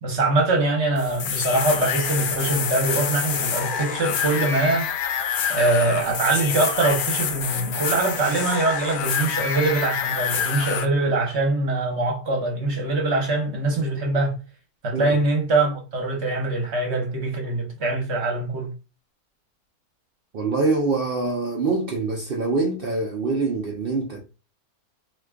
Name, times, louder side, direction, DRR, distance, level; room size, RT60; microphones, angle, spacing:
voice 1, 0.0-4.9 5.5-14.4 14.8-18.7, right 2 dB, 50° right, 1.1 m, -23 dB
sound 1, 1.0-10.9, left 7 dB, 75° left, 1.1 m, -27 dB
voice 2, 20.3-24.2, right 3 dB, 70° right, 0.5 m, -24 dB
2.9 x 2.3 x 3.3 m
omnidirectional pair, 1.6 m